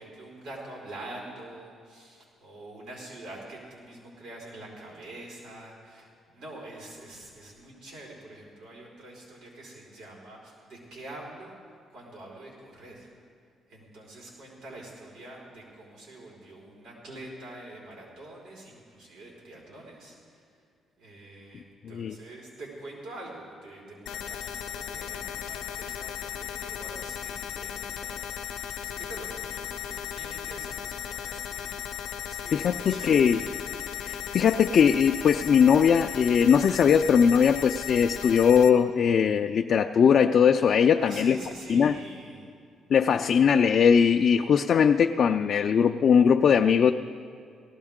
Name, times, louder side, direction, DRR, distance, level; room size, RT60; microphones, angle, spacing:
voice 1, 0.0-11.6 11.9-13.1 13.7-20.4 21.0-28.2 28.5-33.4 41.0-42.5, right 1 dB, 85° right, -2 dB, 4.6 m, -45 dB
voice 2, 21.9-22.2 32.5-33.4 34.0-41.4 41.7-42.0 42.9-46.9, left 7 dB, 55° left, 5 dB, 0.4 m, -20 dB
sound 1, 24.1-38.7, left 9 dB, 85° left, 0.7 m, -36 dB
18.0 x 14.5 x 3.7 m, 2.3 s
cardioid pair, 90°, 0 cm